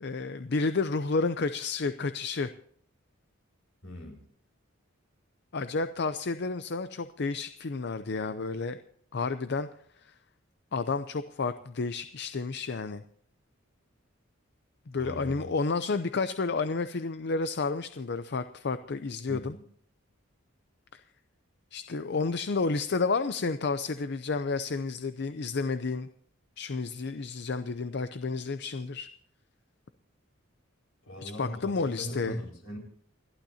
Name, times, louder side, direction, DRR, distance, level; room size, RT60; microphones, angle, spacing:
voice 1, 0.0-2.5 5.5-8.8 9.1-9.7 10.0-10.1 10.7-13.0 14.9-19.6 20.9-21.0 21.7-26.1 26.6-29.1 31.2-32.4, left 4 dB, 55° left, 11 dB, 0.6 m, -31 dB
voice 2, 3.8-4.2 15.0-15.5 19.3-19.6 31.1-32.8, equal, 75° left, 0 dB, 5.2 m, -40 dB
29.5 x 12.0 x 2.8 m, 0.63 s
head